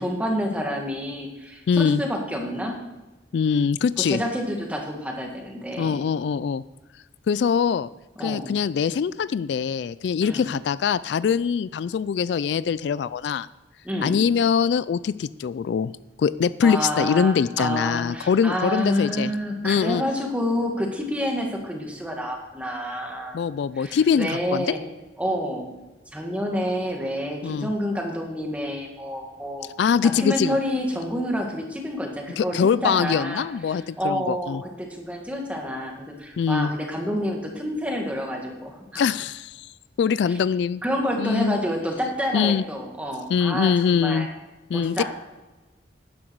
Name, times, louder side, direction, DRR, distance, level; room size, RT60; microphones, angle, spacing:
voice 1, 0.0-2.8 4.0-6.0 8.2-8.5 10.2-10.5 13.8-14.2 16.6-23.4 23.8-24.8 25.2-25.7 26.1-29.7 30.0-39.0 40.3-40.4 40.8-44.3 44.7-45.0, equal, 5° right, 1 dB, 1.9 m, -28 dB
voice 2, 1.7-2.0 3.3-4.2 5.8-6.6 7.3-7.9 8.2-13.5 14.0-15.9 16.2-19.3 19.6-20.0 23.3-24.7 27.4-27.7 29.8-30.6 32.4-34.6 36.4-36.7 39.0-39.7 40.0-40.8 41.2-41.6 42.3-42.6 43.3-44.3 44.7-45.0, left 6 dB, 70° left, 17 dB, 0.3 m, -23 dB
12.0 x 10.5 x 4.6 m, 1.1 s
head